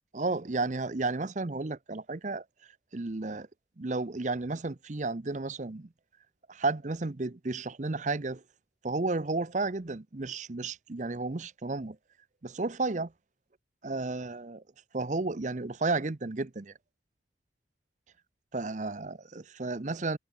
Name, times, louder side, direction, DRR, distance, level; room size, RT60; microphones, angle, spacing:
voice 1, 0.1-2.4 2.9-3.5 3.8-5.9 6.5-8.4 8.8-12.0 12.4-13.1 13.8-14.6 14.9-16.7 18.5-20.2, right 3 dB, 40° right, 0.7 m, -32 dB
head